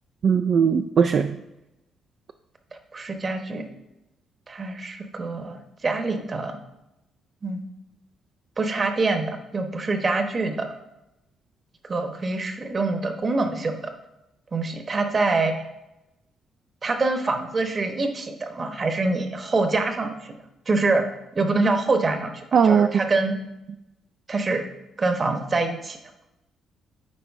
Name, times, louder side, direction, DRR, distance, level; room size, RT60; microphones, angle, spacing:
voice 1, 0.2-1.3 22.5-22.9, right 6 dB, 55° right, 6 dB, 0.3 m, -19 dB
voice 2, 2.9-3.7 4.5-6.6 7.4-7.7 8.6-10.7 11.8-13.8 14.5-15.5 16.8-20.3 20.7-21.0 21.3-23.3 24.3-24.6 25.0-26.0, right 3 dB, 35° right, 6 dB, 1.0 m, -25 dB
9.7 x 4.2 x 3.5 m, 0.91 s
cardioid pair, 90°, 0 cm